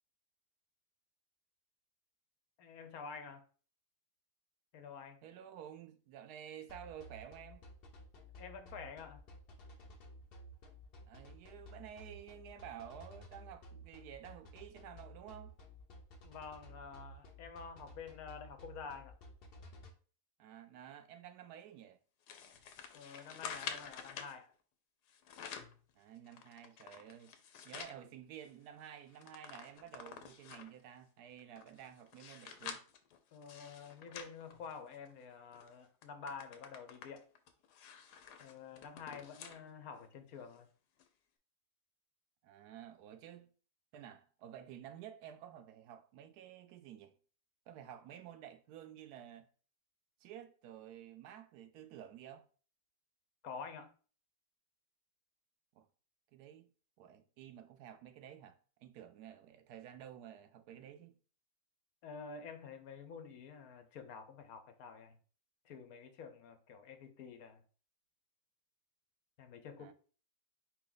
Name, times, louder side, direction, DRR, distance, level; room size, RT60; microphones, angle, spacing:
voice 1, 2.6-3.4 4.7-5.2 8.4-9.2 16.2-19.1 22.9-24.5 33.3-37.3 38.4-40.7 53.4-53.9 62.0-65.2 65.6-67.6 69.4-69.9, left 5 dB, 70° left, 1.1 m, -49 dB
voice 2, 5.2-7.7 11.1-15.5 20.4-22.0 26.0-27.3 27.6-32.8 42.4-43.5 43.9-47.1 47.7-49.5 50.2-52.4 55.7-55.9 56.3-56.7 57.0-61.2 69.8-69.9, right 10 dB, 80° right, 1.1 m, -52 dB
sound 1, 6.7-19.9, left 1 dB, 50° left, 0.8 m, -54 dB
sound 2, 22.3-24.3 25.1-25.8 26.3-28.0 28.4-28.5 28.8-30.8 31.4-35.1 35.5-35.7 36.0-39.6 40.0-40.1 41.0-41.1, left 7 dB, 90° left, 1.2 m, -49 dB
4.7 x 2.9 x 3.8 m
omnidirectional pair, 1.7 m